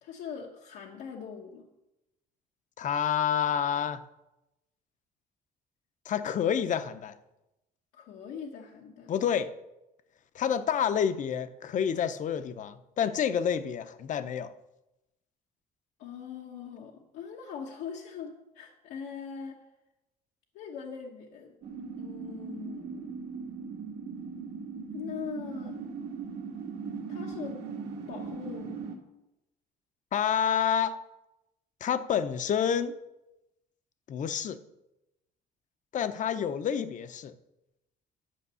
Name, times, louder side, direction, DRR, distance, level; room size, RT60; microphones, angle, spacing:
voice 1, 0.0-1.7 7.9-9.1 16.0-19.6 20.5-21.5 22.0-23.4 24.9-25.8 27.1-27.6 28.1-28.9, left 6 dB, 85° left, -1 dB, 1.2 m, -41 dB
voice 2, 2.8-4.0 6.1-7.1 9.1-9.5 10.3-14.5 30.1-31.0 31.8-32.9 34.1-34.6 35.9-37.3, left 8 dB, 50° left, 12 dB, 0.7 m, -28 dB
sound 1, 21.6-29.0, right 5 dB, 85° right, 2.0 m, -39 dB
11.5 x 5.2 x 6.9 m, 0.94 s
cardioid pair, 110°, 17 cm